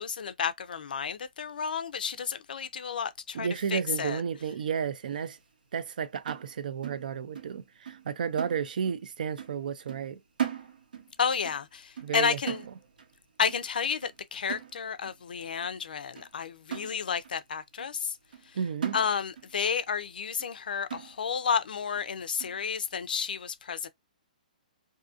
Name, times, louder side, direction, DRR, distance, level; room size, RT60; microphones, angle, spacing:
voice 1, 0.0-4.2 11.2-12.6 13.4-18.1 18.9-23.9, left 6 dB, 80° left, 0.4 m, -31 dB
voice 2, 3.3-5.4 5.7-10.2 12.0-12.4 18.5-19.0, right 7 dB, 70° right, 0.4 m, -32 dB
sound 1, 6.3-7.6 7.9-8.1 8.4-9.1 9.4-9.6 9.9-11.1 11.4-11.7 12.0-13.1 13.5-13.7 14.0-14.2 14.5-15.1 15.6-15.7 16.2-16.3 16.7-17.4 17.8-17.9 18.3-18.5 18.8-19.5 19.9-20.0 20.4-20.5 20.9-21.4 21.9-22.0 22.4-22.6, right 9 dB, 90° right, 0.8 m, -38 dB
2.6 x 2.5 x 2.4 m
hypercardioid pair, 160°, 5 cm